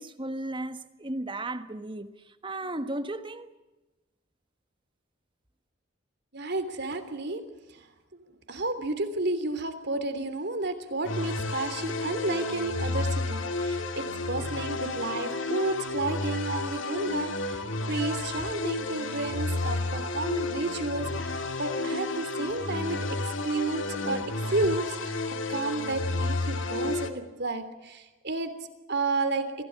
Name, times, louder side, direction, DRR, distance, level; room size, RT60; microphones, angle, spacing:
voice 1, 0.0-2.1 2.4-3.5, right 1 dB, 25° right, 1.4 m, -35 dB
voice 2, 6.3-7.4 7.7-7.9 8.1-24.2 24.5-25.2 25.5-28.5 28.9-29.5, right 2 dB, 55° right, 3.2 m, -31 dB
sound 1, 11.0-27.1, left 2 dB, 70° left, 2.3 m, -31 dB
26.0 x 16.5 x 8.8 m
head